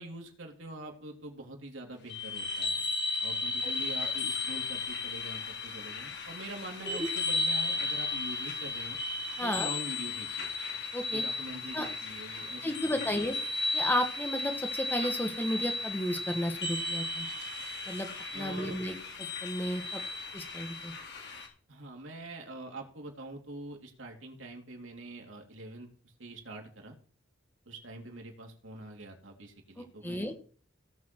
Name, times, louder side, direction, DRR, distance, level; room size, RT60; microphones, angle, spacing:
voice 1, 0.0-2.9 3.2-9.0 9.4-10.5 11.1-13.3 18.3-18.8 21.7-27.0 27.6-30.4, right 2 dB, 80° right, 1 dB, 3.0 m, -44 dB
sound 1, 2.1-21.5, left 3 dB, 60° left, 3.2 m, -35 dB
voice 2, 9.4-9.7 10.9-11.2 11.7-11.9 12.6-13.4 13.7-17.3 17.9-18.1 18.3-20.0 20.3-20.9 29.8-30.3, equal, 10° left, 6 dB, 1.4 m, -33 dB
17.5 x 7.1 x 4.6 m, 0.43 s
head